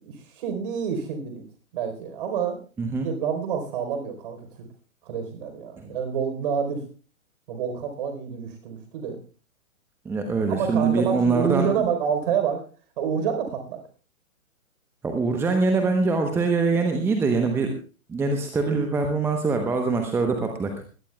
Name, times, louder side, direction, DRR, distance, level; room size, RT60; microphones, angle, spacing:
voice 1, 0.0-1.4 1.7-2.6 3.0-4.5 5.0-6.8 7.5-9.2 10.5-12.6 13.0-13.8, right 7 dB, 40° right, 6 dB, 4.2 m, -28 dB
voice 2, 10.0-11.8 15.0-17.7 18.1-20.7, right 4 dB, 5° right, 5 dB, 0.9 m, -23 dB
21.5 x 17.0 x 2.3 m, 0.37 s
figure-of-eight pair, 125°, 42 cm